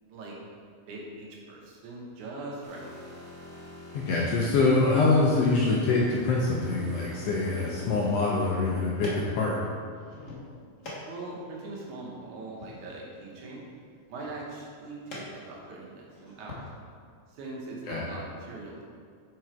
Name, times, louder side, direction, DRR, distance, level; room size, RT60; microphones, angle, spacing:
voice 1, 0.9-2.8 11.0-13.6 14.1-16.6 17.3-18.8, right 2 dB, 80° right, -3 dB, 2.5 m, -41 dB
sound 1, 2.6-9.1, left 1 dB, 30° right, 1.5 m, -46 dB
voice 2, 3.9-9.6 17.9-18.1, left 3 dB, 75° left, -3 dB, 1.5 m, -25 dB
sound 2, 8.2-16.7, left 1 dB, 60° left, 0.8 m, -47 dB
6.1 x 4.9 x 4.5 m, 2.1 s
omnidirectional pair, 3.4 m